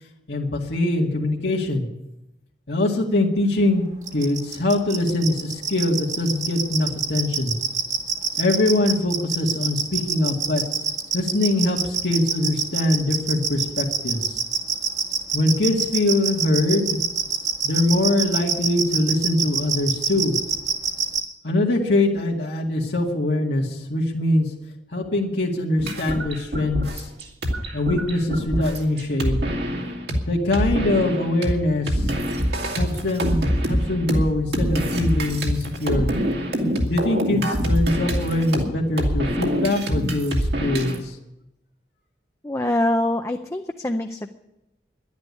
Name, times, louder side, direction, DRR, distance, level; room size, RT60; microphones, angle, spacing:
voice 1, 0.3-1.9 2.7-3.8 4.1-7.5 8.4-10.6 11.1-14.4 15.3-17.0 17.6-20.4 21.4-24.5 24.9-27.1 27.7-29.4 30.3-32.1 32.8-36.1 36.9-41.2, left 1 dB, 75° left, -2 dB, 2.1 m, -23 dB
sound 1, 4.1-21.2, right 6 dB, 45° right, 1.6 m, -24 dB
sound 2, 25.8-30.2 30.5-31.5 31.9-41.0, equal, 65° right, 2.3 m, -25 dB
voice 2, 42.4-44.5, left 1 dB, 15° left, 5 dB, 0.5 m, -24 dB
11.5 x 10.5 x 9.7 m, 0.89 s
head